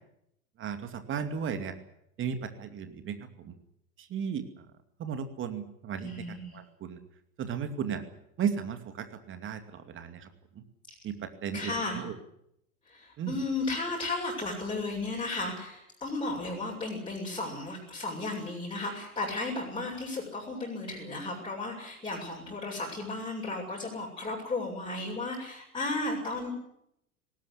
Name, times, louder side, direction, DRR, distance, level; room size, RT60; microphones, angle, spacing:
voice 1, 0.6-1.7 2.2-3.5 4.0-4.7 5.0-7.0 7.4-8.0 8.4-10.6 11.0-12.2 13.2-13.4, right 7 dB, 25° right, 8 dB, 2.5 m, -35 dB
voice 2, 6.0-6.6 11.5-12.0 12.9-26.5, left 2 dB, 10° left, -4 dB, 7.0 m, -34 dB
19.5 x 18.5 x 9.8 m, 0.76 s
figure-of-eight pair, 90°, 44 cm